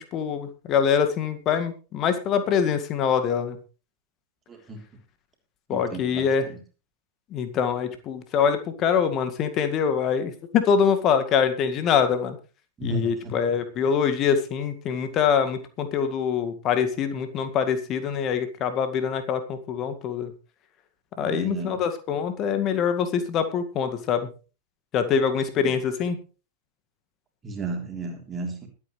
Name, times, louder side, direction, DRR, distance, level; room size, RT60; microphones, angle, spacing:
voice 1, 0.0-3.6 5.7-6.5 7.3-12.4 12.8-20.3 21.2-24.3 24.9-26.2, left 7 dB, 35° left, 9 dB, 1.9 m, -24 dB
voice 2, 4.5-4.8 5.7-6.6 12.8-13.3 21.2-21.8 25.0-25.1 25.6-25.7 27.4-28.7, right 3 dB, 20° right, 2 dB, 3.5 m, -34 dB
22.5 x 8.7 x 3.2 m, 0.34 s
figure-of-eight pair, 90°, 0 cm